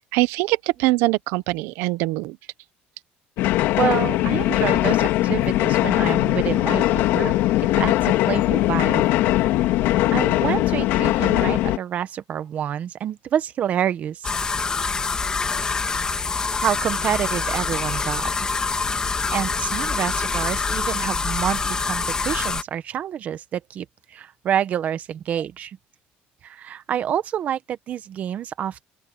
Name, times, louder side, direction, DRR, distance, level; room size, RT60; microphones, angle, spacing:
voice 1, 0.0-2.4, right 20 dB, 75° right, 1.0 m, -23 dB
sound 1, 3.4-11.8, left 16 dB, 65° left, 2.4 m, -20 dB
voice 2, 3.8-7.4 7.7-9.0 10.1-14.3 16.6-18.3 19.3-23.8 24.1-25.8 26.4-28.8, right 10 dB, 40° right, 1.1 m, -27 dB
sound 2, 14.2-22.6, left 4 dB, 20° left, 2.4 m, -25 dB
open air
cardioid pair, 160°, 4 cm